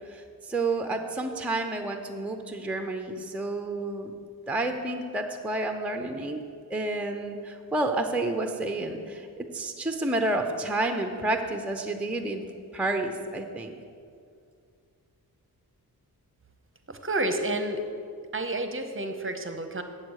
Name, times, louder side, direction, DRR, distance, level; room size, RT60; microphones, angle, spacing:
voice 1, 0.1-4.1 4.5-6.4 6.7-12.4 12.7-13.7, right 2 dB, 5° right, 5 dB, 0.6 m, -30 dB
voice 2, 16.9-17.8 18.3-19.8, right 2 dB, 30° right, 7 dB, 0.8 m, -30 dB
9.2 x 7.5 x 6.4 m, 2.3 s
wide cardioid pair, 90°, 39 cm